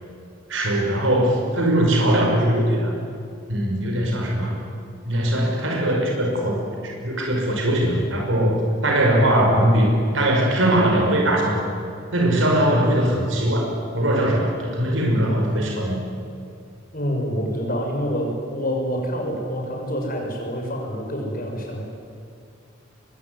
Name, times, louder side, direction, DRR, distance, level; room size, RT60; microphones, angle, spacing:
voice 1, 0.5-2.9 3.5-4.6 5.0-11.7 12.1-16.0, right 1 dB, 75° right, 0 dB, 5.7 m, -20 dB
voice 2, 16.9-21.8, equal, 45° left, 1 dB, 6.5 m, -27 dB
24.0 x 23.0 x 9.8 m, 2.5 s
head